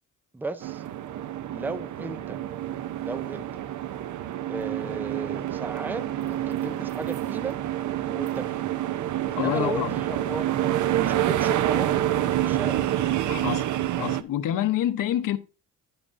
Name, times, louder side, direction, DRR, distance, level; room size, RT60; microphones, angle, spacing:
voice 1, 0.3-0.8 1.5-2.4 3.0-3.5 4.5-7.6 8.1-8.7 9.3-10.5 10.9-12.8, right 3 dB, 5° right, 0.5 m, -35 dB
sound 1, 0.6-14.2, right 12 dB, 65° right, 0.7 m, -27 dB
voice 2, 9.4-9.9 13.3-13.7 14.0-15.4, left 12 dB, 90° left, 0.8 m, -27 dB
10.5 x 9.8 x 2.5 m
wide cardioid pair, 170°, 32 cm